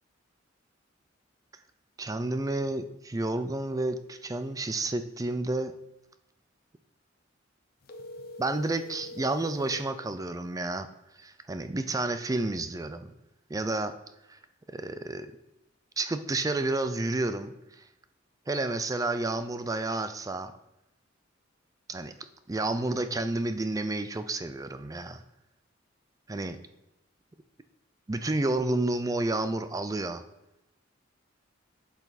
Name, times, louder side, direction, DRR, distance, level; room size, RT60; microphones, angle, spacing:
voice 1, 2.0-5.7 8.4-10.9 11.2-13.1 13.5-13.9 14.3-14.4 14.7-15.3 16.0-17.5 18.5-20.5 21.9-22.1 22.5-25.2 26.3-26.6 28.1-30.2, right 2 dB, 15° right, 10 dB, 0.4 m, -30 dB
sound 1, 7.8-9.9, left 1 dB, 50° left, 0.8 m, -43 dB
8.1 x 6.8 x 4.1 m, 0.89 s
head